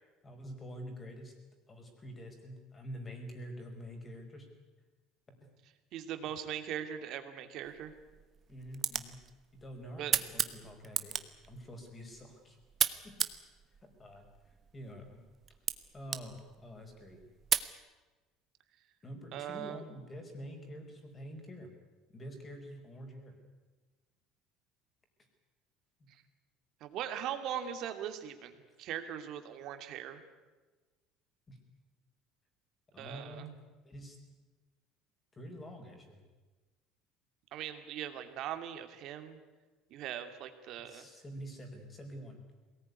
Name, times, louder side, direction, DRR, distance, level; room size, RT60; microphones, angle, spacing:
voice 1, 0.2-1.3 1.7-4.5 8.5-9.2 9.6-12.6 13.0-13.2 14.0-15.2 15.9-17.2 19.0-21.7 22.1-23.3 31.5-31.6 32.9-34.2 35.3-36.2 40.8-42.4, equal, 20° left, 4 dB, 5.4 m, -47 dB
voice 2, 5.9-7.9 10.0-10.1 19.3-19.8 26.8-28.5 28.8-30.2 33.0-33.5 37.5-39.4 39.9-41.1, right 10 dB, 55° right, 8 dB, 2.5 m, -40 dB
sound 1, 7.6-17.7, right 7 dB, 35° right, 1.2 m, -37 dB
22.0 x 18.5 x 9.7 m, 1.3 s
cardioid pair, 130°, 0 cm